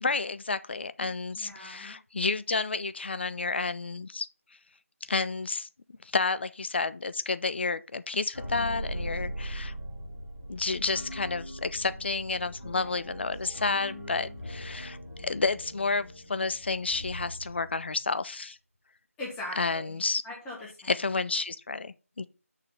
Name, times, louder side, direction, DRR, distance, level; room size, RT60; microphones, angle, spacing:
voice 1, 0.0-4.3 5.1-5.7 6.0-9.7 10.5-18.6 19.6-20.2 20.9-22.2, left 4 dB, 45° left, 0.6 m, -30 dB
voice 2, 1.3-2.0 12.6-13.0 19.2-20.9, left 1 dB, 10° left, 2.3 m, -41 dB
sound 1, 8.3-18.0, equal, 85° left, 2.5 m, -40 dB
6.6 x 5.2 x 5.6 m
figure-of-eight pair, 165°, 8 cm